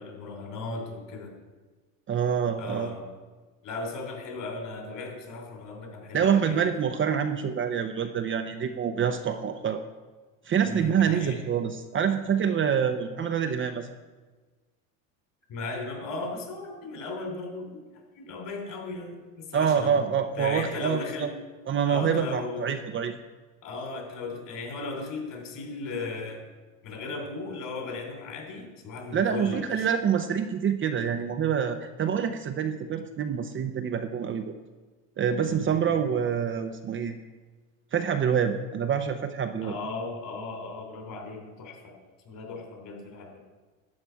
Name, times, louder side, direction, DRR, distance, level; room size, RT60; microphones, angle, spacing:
voice 1, 0.0-1.3 2.6-3.1 3.6-6.6 10.6-11.4 15.5-17.8 18.2-20.0 20.4-21.3 21.8-22.7 23.6-26.4 26.8-29.9 35.5-36.0 39.6-41.9 42.3-43.4, left 3 dB, 50° left, 2 dB, 3.5 m, -36 dB
voice 2, 2.1-2.9 6.1-9.8 10.5-13.9 19.5-21.3 21.7-23.2 29.1-34.5 35.2-37.2 37.9-39.8, right 7 dB, 30° right, 7 dB, 0.7 m, -26 dB
11.5 x 8.6 x 4.6 m, 1.3 s
supercardioid pair, 110°, 41 cm